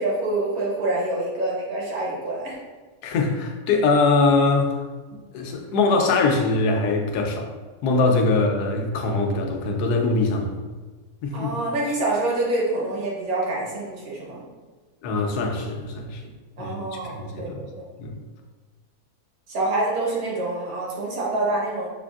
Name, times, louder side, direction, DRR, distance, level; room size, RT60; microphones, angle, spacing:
voice 1, 0.0-2.6 8.3-8.4 11.3-14.4 16.6-17.8 19.5-21.9, right 2 dB, 65° right, -5 dB, 1.5 m, -26 dB
voice 2, 3.0-4.8 5.3-7.5 7.8-10.5 11.2-11.5 15.0-16.2 16.6-17.6 18.0-18.2, left 3 dB, 85° left, 3 dB, 1.2 m, -22 dB
6.6 x 2.5 x 2.3 m, 1.3 s
omnidirectional pair, 1.6 m